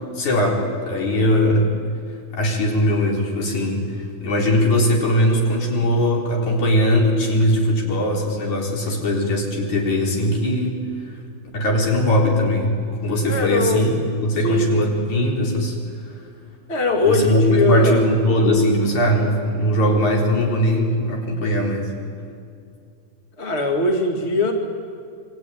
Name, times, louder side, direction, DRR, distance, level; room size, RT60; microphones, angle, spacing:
voice 1, 0.0-1.8 2.3-10.8 11.5-15.8 17.0-21.9, equal, 55° left, 0 dB, 5.2 m, -20 dB
voice 2, 13.3-13.8 14.4-14.7 16.7-18.1 23.4-24.5, left 2 dB, 25° left, 3 dB, 1.9 m, -20 dB
28.0 x 23.0 x 9.3 m, 2.3 s
omnidirectional pair, 4.1 m